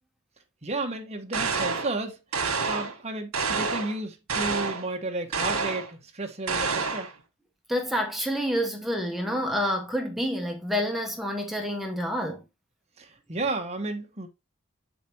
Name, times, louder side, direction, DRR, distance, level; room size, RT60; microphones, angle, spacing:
voice 1, 0.6-2.2 2.7-7.1 13.0-14.3, right 2 dB, 30° right, 1.2 m, -32 dB
sound 1, 1.3-1.9 2.3-3.0 3.3-4.0 4.3-4.8 5.3-5.9 6.5-7.1, right 4 dB, 80° right, 1.5 m, -28 dB
voice 2, 7.7-12.4, equal, ahead, 1.0 m, -28 dB
7.4 x 5.1 x 2.9 m
head